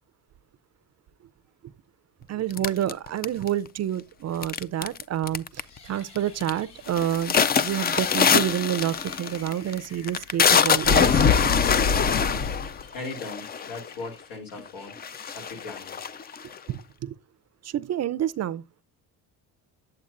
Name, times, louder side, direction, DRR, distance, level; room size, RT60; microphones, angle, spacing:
voice 1, 2.3-11.2 16.7-17.1 17.6-18.6, right 11 dB, 40° right, 0.5 m, -28 dB
sound 1, 2.6-3.7 4.4-5.0 5.3-5.8 6.2-6.5 6.9-13.9 14.6-14.7 15.0-16.6, left 6 dB, 25° left, 0.4 m, -23 dB
sound 2, 5.6-16.9, left 4 dB, 70° left, 4.0 m, -52 dB
voice 2, 12.9-14.9 15.3-16.0, left 3 dB, 90° left, 3.5 m, -38 dB
8.6 x 8.1 x 2.5 m
cardioid pair, 100°, 41 cm